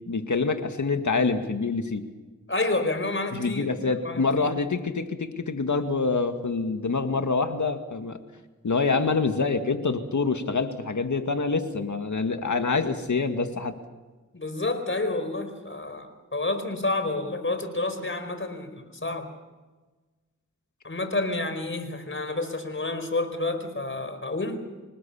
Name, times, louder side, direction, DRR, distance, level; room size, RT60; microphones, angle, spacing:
voice 1, 0.1-2.1 3.3-8.2 8.6-13.7, left 4 dB, 65° left, 7 dB, 2.1 m, -26 dB
voice 2, 2.5-3.7 4.0-4.5 14.3-19.3 20.8-24.7, left 2 dB, 40° left, 8 dB, 4.6 m, -29 dB
26.5 x 19.5 x 7.2 m, 1.3 s
cardioid pair, 50°, 31 cm